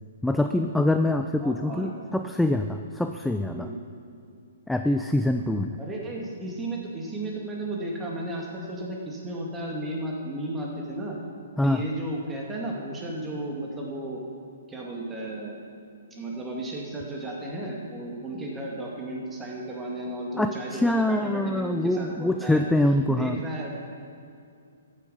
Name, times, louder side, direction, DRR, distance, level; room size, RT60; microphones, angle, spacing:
voice 1, 0.2-3.7 4.7-5.8 11.6-11.8 20.4-23.4, left 1 dB, 5° left, 6 dB, 0.4 m, -24 dB
voice 2, 1.4-1.9 3.4-3.8 5.8-11.2 11.6-14.2 14.7-15.6 16.1-22.6 23.1-23.7, right 1 dB, 15° right, -2 dB, 2.3 m, -34 dB
14.0 x 8.4 x 5.6 m, 2.4 s
figure-of-eight pair, 125°, 0 cm